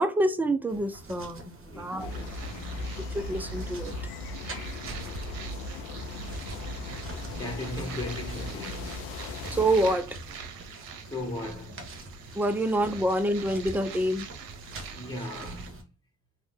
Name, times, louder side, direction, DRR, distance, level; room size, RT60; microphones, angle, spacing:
voice 1, 0.0-2.1 3.1-4.0 9.5-10.2 12.3-14.3, right 1 dB, 5° right, 0.3 m, -27 dB
sound 1, 0.7-15.8, right 2 dB, 35° right, 1.0 m, -46 dB
voice 2, 1.7-2.9 7.1-9.2 11.0-11.8 14.9-15.9, left 2 dB, 10° left, 1.1 m, -38 dB
sound 2, 2.0-9.9, left 2 dB, 80° left, 0.5 m, -37 dB
sound 3, 2.1-15.7, right 6 dB, 80° right, 0.6 m, -44 dB
2.7 x 2.0 x 3.4 m
hypercardioid pair, 50°, 39 cm